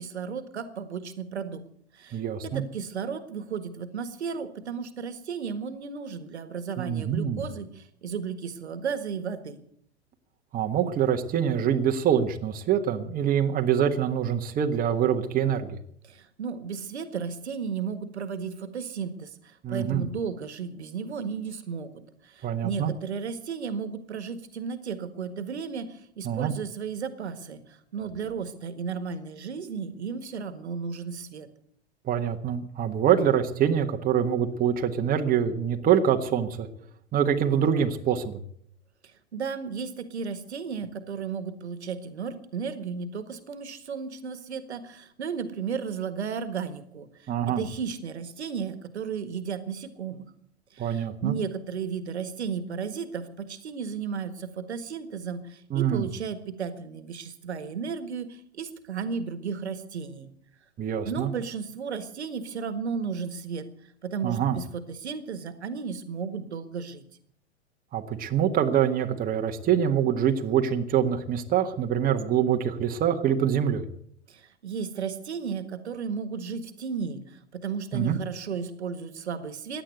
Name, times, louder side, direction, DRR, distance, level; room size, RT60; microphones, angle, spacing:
voice 1, 0.0-1.6 1.9-9.6 16.1-31.5 39.3-50.2 50.7-60.3 61.0-63.7 64.0-67.0 74.3-79.8, right 6 dB, 70° right, 11 dB, 1.7 m, -34 dB
voice 2, 2.1-2.6 6.8-7.4 10.5-15.8 19.6-20.1 22.4-22.9 26.2-26.5 32.0-36.7 37.1-38.4 47.3-47.6 50.8-51.3 55.7-56.1 60.8-61.3 64.2-64.6 67.9-73.9 77.9-78.2, right 9 dB, 25° right, 4 dB, 1.5 m, -25 dB
16.5 x 10.5 x 8.0 m, 0.67 s
figure-of-eight pair, 95°, 34 cm